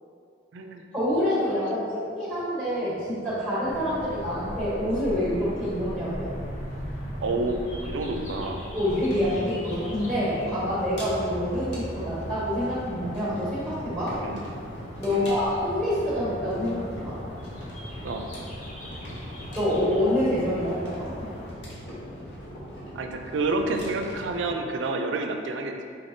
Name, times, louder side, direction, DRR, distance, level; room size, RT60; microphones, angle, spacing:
voice 1, 0.9-6.3 8.7-14.1 15.0-17.2 19.5-21.1, left 1 dB, 5° left, -10 dB, 1.3 m, -27 dB
sound 1, 3.6-21.5, equal, 40° left, 0.6 m, -39 dB
voice 2, 7.2-8.6 14.2-14.4 15.1-15.3 18.0-18.3 22.9-25.8, right 2 dB, 80° right, 5 dB, 0.4 m, -29 dB
sound 2, 8.9-24.5, equal, 75° left, 0.9 m, -41 dB
4.2 x 3.5 x 2.6 m, 2.3 s
head